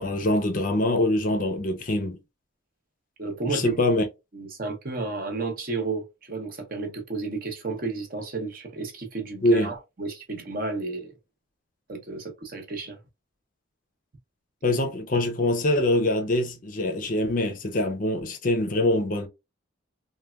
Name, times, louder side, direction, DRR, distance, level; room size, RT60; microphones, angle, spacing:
voice 1, 0.0-2.2 3.5-4.0 9.4-9.7 14.6-19.3, left 1 dB, 40° left, 0.5 m, -24 dB
voice 2, 3.2-3.8 4.3-11.1 11.9-13.0, right 3 dB, 45° right, 0.7 m, -32 dB
3.3 x 2.2 x 2.2 m
head